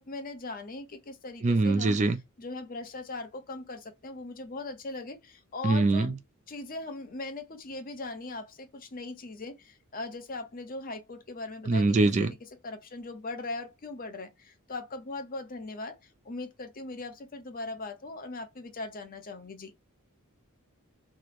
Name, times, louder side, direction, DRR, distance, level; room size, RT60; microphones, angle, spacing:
voice 1, 0.0-2.0 2.4-6.2 6.5-11.9 12.2-12.4 12.6-16.0 16.2-19.7, left 2 dB, 40° left, 0.7 m, -39 dB
voice 2, 1.4-2.2 5.6-6.1 11.7-12.3, right 2 dB, 35° right, 0.3 m, -23 dB
3.1 x 2.1 x 4.0 m
head